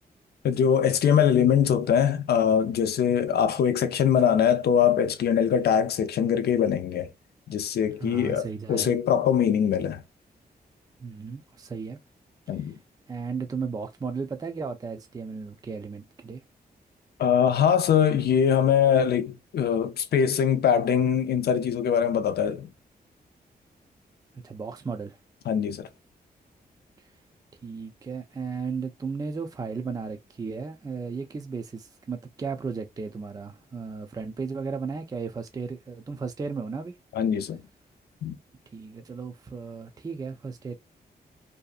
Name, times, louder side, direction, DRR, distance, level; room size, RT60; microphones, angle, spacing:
voice 1, 0.4-7.1 7.5-10.0 12.5-12.8 17.2-22.7 25.5-25.9 37.1-37.6 38.2-38.4, left 8 dB, 75° left, 0.5 m, -22 dB
voice 2, 8.0-9.0 11.0-12.0 12.5-12.7 13.1-16.4 24.3-25.2 27.0-27.1 27.6-37.0 38.7-40.8, right 5 dB, 25° right, 0.4 m, -35 dB
2.6 x 2.3 x 2.3 m
wide cardioid pair, 105°, 17 cm